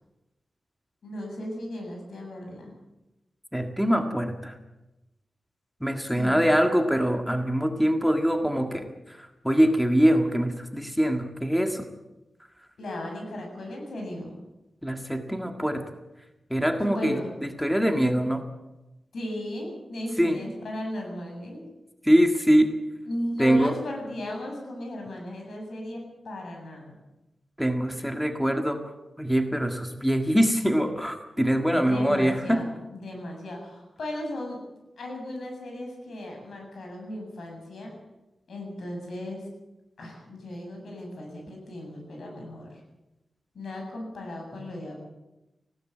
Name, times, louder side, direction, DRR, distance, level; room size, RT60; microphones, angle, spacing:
voice 1, 1.0-2.8 6.1-6.5 12.8-14.4 16.8-17.3 19.1-21.7 23.1-27.0 31.7-34.6 35.0-37.9 38.5-39.5 40.0-42.7 43.5-44.9, left 1 dB, 80° left, 2 dB, 7.8 m, -36 dB
voice 2, 3.5-4.5 5.8-11.9 14.8-15.8 16.5-17.2 17.6-18.4 20.2-20.4 22.0-22.7 23.4-23.7 27.6-28.8 29.2-32.7 44.6-44.7, equal, ahead, 5 dB, 1.7 m, -23 dB
19.0 x 17.0 x 8.7 m, 0.99 s
wide cardioid pair, 130°, 0 cm